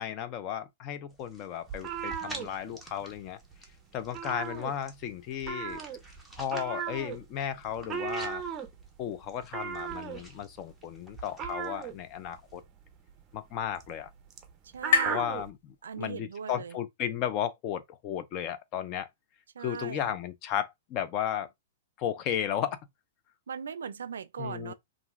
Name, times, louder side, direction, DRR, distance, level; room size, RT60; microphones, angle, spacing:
voice 1, 0.0-3.4 3.9-5.8 6.4-8.4 9.0-12.6 13.3-14.1 15.1-19.1 19.6-21.5 22.0-22.8 24.4-24.7, left 9 dB, 35° left, 0.4 m, -34 dB
sound 1, 1.1-12.6, right 1 dB, 5° left, 0.8 m, -50 dB
sound 2, 1.7-3.2 3.4-3.7 4.0-5.1 5.4-15.5, right 7 dB, 25° right, 0.5 m, -37 dB
sound 3, 12.6-16.3, left 6 dB, 65° left, 1.0 m, -34 dB
voice 2, 14.7-15.3 15.8-16.8 19.6-20.1 23.5-24.7, right 6 dB, 85° right, 0.3 m, -39 dB
2.5 x 2.2 x 3.0 m
hypercardioid pair, 140°, 0 cm